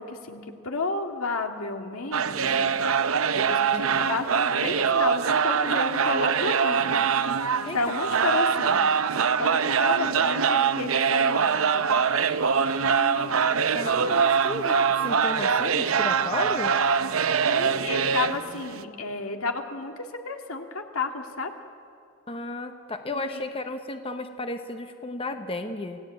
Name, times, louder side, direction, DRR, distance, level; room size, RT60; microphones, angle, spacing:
voice 1, 0.0-2.8 3.3-7.0 7.7-8.8 9.2-11.9 17.5-21.5 23.1-23.4, left 3 dB, 80° left, 4 dB, 2.1 m, -32 dB
sound 1, 2.1-18.8, right 6 dB, 75° right, 0.7 m, -23 dB
voice 2, 12.8-16.7 22.3-26.0, left 2 dB, 25° left, 7 dB, 1.1 m, -34 dB
28.0 x 16.5 x 9.1 m, 2.5 s
head